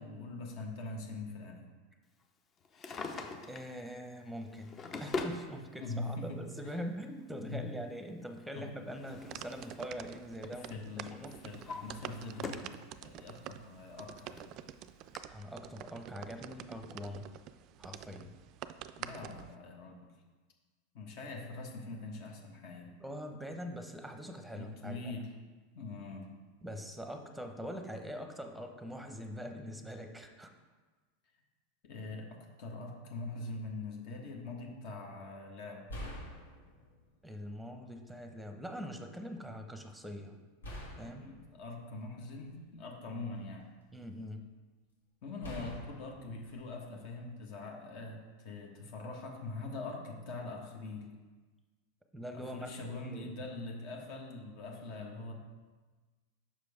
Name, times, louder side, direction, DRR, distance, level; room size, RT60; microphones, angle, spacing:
voice 1, 0.0-1.7 5.8-6.8 7.5-7.6 8.5-8.7 10.6-14.5 19.0-20.0 20.9-22.9 24.5-25.3 25.7-26.3 31.8-35.9 41.0-43.7 45.2-51.1 52.3-55.3, left 2 dB, 55° left, 1 dB, 1.2 m, -43 dB
Drawer open or close, 2.6-3.7 4.5-5.4 6.5-6.6 8.4-9.9 10.2-10.6 11.1-12.8 13.2-13.3 14.0-14.1 14.4-14.5 15.1-15.2, left 3 dB, 30° left, 0.7 m, -42 dB
voice 2, 3.5-11.3 15.3-17.3 17.8-18.3 23.0-25.2 26.6-30.5 37.2-40.4 41.0-41.2 43.9-44.5 52.1-53.4, equal, ahead, 5 dB, 0.8 m, -43 dB
sound 1, 9.1-19.6, right 11 dB, 45° right, 0.3 m, -48 dB
sound 2, 35.1-35.3 35.9-37.2 38.1-38.2 40.6-42.8 43.4-44.2 45.4-47.5, equal, 85° left, 1.6 m, -47 dB
5.9 x 5.1 x 4.8 m, 1.3 s
hypercardioid pair, 95°, 0 cm